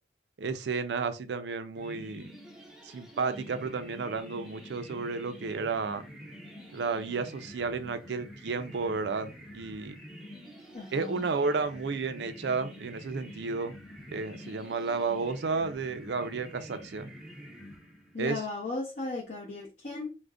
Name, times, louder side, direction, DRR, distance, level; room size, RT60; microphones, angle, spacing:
voice 1, 0.4-2.3 2.8-6.0 6.7-10.0 10.9-13.8 14.1-17.1 18.2-18.4, right 4 dB, 80° right, 0.4 m, -32 dB
sound 1, 1.8-18.3, equal, ahead, 0.5 m, -47 dB
voice 2, 10.7-11.3 18.1-20.2, left 3 dB, 45° left, 0.7 m, -36 dB
2.5 x 2.1 x 3.4 m
head